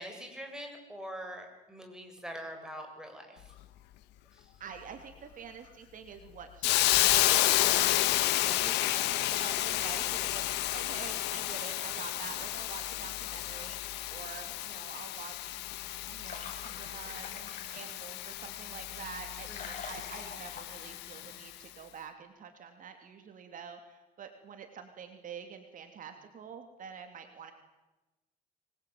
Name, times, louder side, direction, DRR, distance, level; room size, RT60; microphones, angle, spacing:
voice 1, 0.0-3.4 4.3-4.5 19.5-19.8, equal, 5° right, 3 dB, 7.0 m, -44 dB
voice 2, 4.6-10.5 10.7-15.5 16.1-27.5, right 7 dB, 50° right, 6 dB, 3.1 m, -47 dB
Hiss, 6.6-21.4, left 16 dB, 90° left, 1.5 m, -31 dB
sound 1, 15.5-21.5, left 5 dB, 50° left, 7.6 m, -48 dB
26.0 x 21.0 x 9.5 m, 1.1 s
cardioid pair, 110°, 17 cm